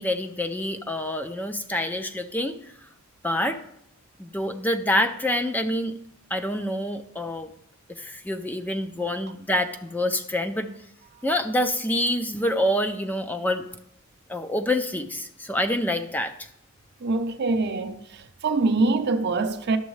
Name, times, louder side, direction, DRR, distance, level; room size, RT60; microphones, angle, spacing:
voice 1, 0.0-2.5 3.2-3.6 4.2-5.9 6.3-7.5 8.0-10.7 11.2-13.6 14.3-16.3, left 1 dB, 10° left, 0.4 m, -26 dB
voice 2, 17.0-19.8, right 3 dB, 55° right, 0.5 m, -24 dB
11.0 x 7.1 x 3.2 m
head